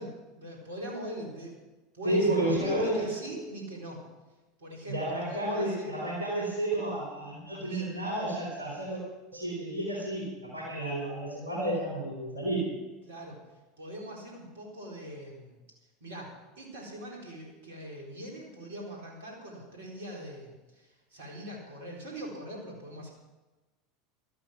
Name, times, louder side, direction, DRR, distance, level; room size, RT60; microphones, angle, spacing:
voice 1, 0.0-1.5 1.9-4.0 4.6-6.0 7.5-7.9 13.0-13.5 13.8-15.6 16.0-23.1, equal, 65° right, -1 dB, 4.2 m, -41 dB
voice 2, 2.0-3.1 4.9-9.0 9.3-12.6, right 1 dB, 85° right, -3 dB, 3.8 m, -31 dB
13.0 x 13.0 x 6.0 m, 1.2 s
figure-of-eight pair, 75°, 0 cm